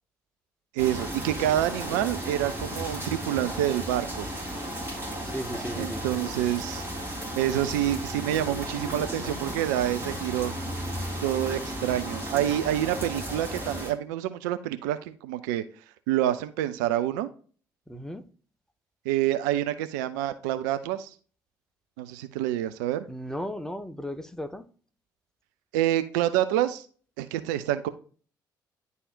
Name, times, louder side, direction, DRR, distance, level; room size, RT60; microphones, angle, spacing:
voice 1, 0.7-4.3 5.8-6.9 7.4-10.5 11.2-15.6 16.1-17.3 19.1-21.1 22.0-23.1 25.7-26.9 27.2-27.9, right 13 dB, 70° right, 0.5 m, -27 dB
sound 1, 0.8-13.9, equal, 20° right, 3.5 m, -34 dB
voice 2, 5.2-6.1 17.9-18.3 23.1-24.6, equal, 5° left, 0.9 m, -35 dB
10.5 x 4.1 x 2.4 m
figure-of-eight pair, 45°, 10 cm